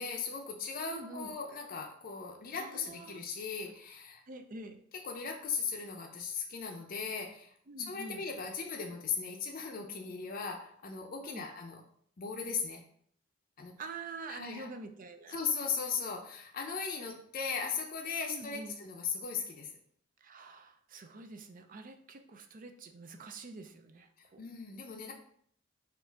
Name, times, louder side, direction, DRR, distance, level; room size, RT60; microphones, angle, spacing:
voice 1, 0.0-4.2 5.0-7.5 7.8-11.8 12.2-12.8 13.6-13.7 14.3-14.7 15.3-19.7 24.2-25.1, left 5 dB, 45° left, 1 dB, 0.6 m, -38 dB
voice 2, 0.9-1.4 2.6-3.2 4.3-4.8 7.7-8.3 11.2-11.5 13.8-15.4 18.3-18.8 20.2-24.4, right 3 dB, 40° right, 7 dB, 0.5 m, -46 dB
4.4 x 2.5 x 4.5 m, 0.62 s
head